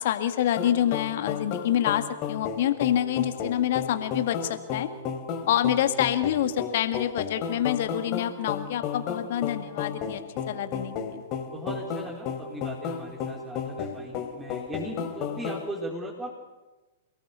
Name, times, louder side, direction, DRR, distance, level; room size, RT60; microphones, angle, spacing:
voice 1, 0.0-4.9 5.5-10.2 10.5-11.2, left 11 dB, 50° left, 9 dB, 1.9 m, -27 dB
sound 1, 0.6-15.7, left 7 dB, 35° left, 3.5 m, -33 dB
voice 2, 11.5-16.4, right 1 dB, 10° right, -2 dB, 4.4 m, -38 dB
29.5 x 19.5 x 6.9 m, 1.1 s
figure-of-eight pair, 105°, 0 cm